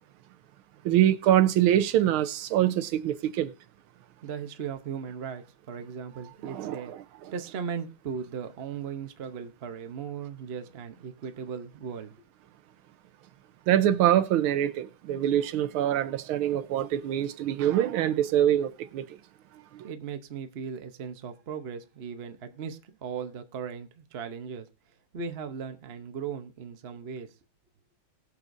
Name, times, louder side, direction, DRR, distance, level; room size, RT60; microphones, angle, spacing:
voice 1, 0.8-3.5 6.4-7.0 13.7-19.0 19.7-19.9, right 11 dB, 80° right, 1.6 m, -24 dB
voice 2, 4.2-6.9 7.3-12.1 19.8-24.7 25.1-27.3, right 6 dB, 55° right, 0.6 m, -37 dB
20.5 x 6.8 x 2.6 m
omnidirectional pair, 2.3 m